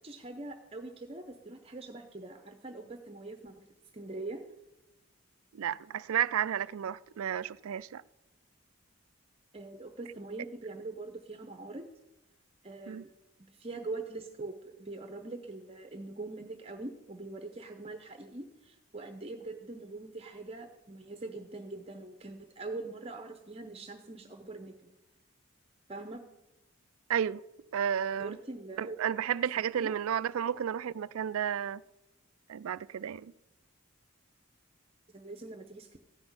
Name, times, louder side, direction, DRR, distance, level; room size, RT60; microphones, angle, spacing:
voice 1, 0.0-3.5 3.9-4.4 9.5-11.9 12.6-13.1 13.4-24.9 25.9-26.2 28.2-29.0 29.7-30.0 35.1-35.9, right 2 dB, 30° right, 0.8 m, -43 dB
voice 2, 5.5-8.0 12.9-13.0 27.1-27.4 27.7-28.4 28.8-31.8 32.5-33.3, right 9 dB, 85° right, 0.4 m, -32 dB
15.0 x 6.2 x 9.5 m
head